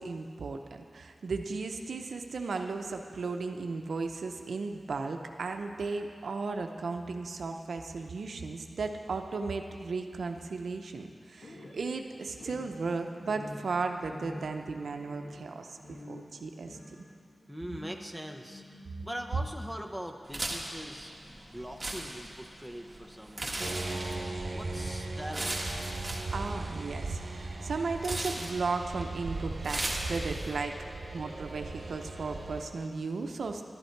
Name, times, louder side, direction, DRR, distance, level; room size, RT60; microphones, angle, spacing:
voice 1, 0.0-17.0 26.3-30.8 31.1-33.6, right 4 dB, 85° right, 5 dB, 0.6 m, -35 dB
sound 1, 11.4-24.4, left 1 dB, 60° left, 1.6 m, -50 dB
voice 2, 17.5-24.0 24.5-25.7 30.9-31.0, equal, 5° left, 3 dB, 0.8 m, -42 dB
sound 2, 20.3-30.6, right 1 dB, 25° right, 1.6 m, -39 dB
sound 3, 23.6-32.6, right 2 dB, 55° right, 1.1 m, -38 dB
11.5 x 10.5 x 4.6 m, 2.2 s
wide cardioid pair, 90°, 0 cm